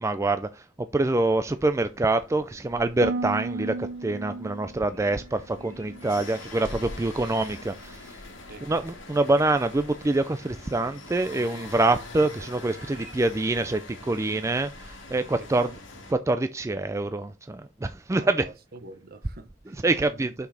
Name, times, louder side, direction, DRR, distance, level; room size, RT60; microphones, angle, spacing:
voice 1, 0.0-8.2 8.6-15.7 16.1-18.5 19.8-20.3, right 2 dB, 15° right, 0.3 m, -25 dB
sound 1, 1.5-16.1, left 2 dB, 75° left, 2.3 m, -44 dB
Harp, 3.0-7.1 7.4-8.0 8.5-8.8, right 3 dB, 85° right, 0.7 m, -36 dB
sound 2, 4.8-7.4 8.7-8.8 10.5-10.6 11.5-14.3, right 3 dB, 30° right, 2.8 m, -54 dB
voice 2, 8.5-8.8 15.3-15.8 18.1-20.3, right 2 dB, 50° right, 0.9 m, -45 dB
5.9 x 5.9 x 4.2 m
head